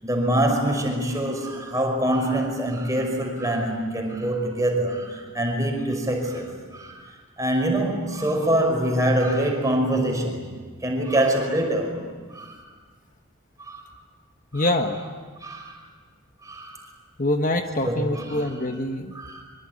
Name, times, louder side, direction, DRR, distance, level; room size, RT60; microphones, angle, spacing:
voice 1, 0.0-10.5 10.8-12.0 12.3-12.6 13.6-13.8 14.5-14.7 15.4-15.8 16.4-16.8 17.8-18.5 19.1-19.4, right 1 dB, 15° right, 2 dB, 5.6 m, -25 dB
voice 2, 14.5-15.0 17.2-19.1, left 1 dB, 40° left, 5 dB, 1.3 m, -25 dB
24.5 x 24.5 x 9.7 m, 1.5 s
head